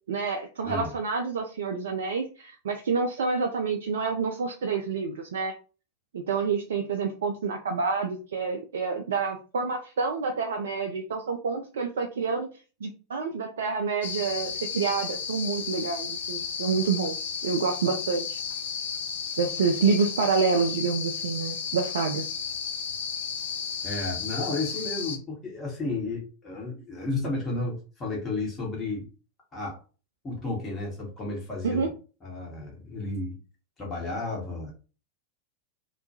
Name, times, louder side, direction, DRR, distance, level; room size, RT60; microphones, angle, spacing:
voice 1, 0.1-5.5 6.1-12.5 12.8-18.4 19.4-22.3 31.6-31.9, right 5 dB, 65° right, 4 dB, 0.3 m, -28 dB
voice 2, 0.6-0.9 23.8-29.1 29.5-29.8 30.2-31.9 32.2-33.4 33.8-34.7, left 2 dB, 20° left, -3 dB, 0.9 m, -32 dB
sound 1, 14.0-25.2, left 6 dB, 60° left, 0.4 m, -33 dB
2.2 x 2.2 x 2.7 m, 0.36 s
figure-of-eight pair, 90°, 0 cm